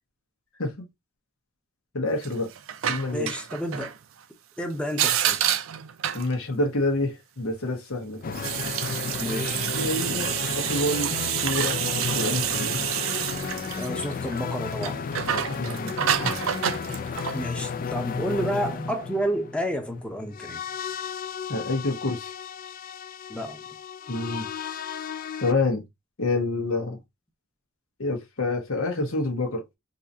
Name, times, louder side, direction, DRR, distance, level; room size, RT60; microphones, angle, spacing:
voice 1, 1.9-2.5 2.8-3.3 6.1-8.3 9.7-12.8 15.6-16.5 18.3-18.4 21.0-21.1 21.5-22.3 24.1-24.5 25.4-25.8 26.2-27.0 28.0-29.6, left 2 dB, 90° left, 1.2 m, -28 dB
sound 1, 2.2-4.0 4.9-6.3 8.2-14.4 14.7-17.5, right 10 dB, 75° right, 0.5 m, -28 dB
voice 2, 3.1-3.9 4.6-5.4 9.2-9.6 13.8-15.1 17.3-20.6 23.3-23.6, equal, 5° left, 0.7 m, -30 dB
sound 2, 8.2-25.5, left 5 dB, 40° left, 0.3 m, -33 dB
3.9 x 2.8 x 2.7 m
head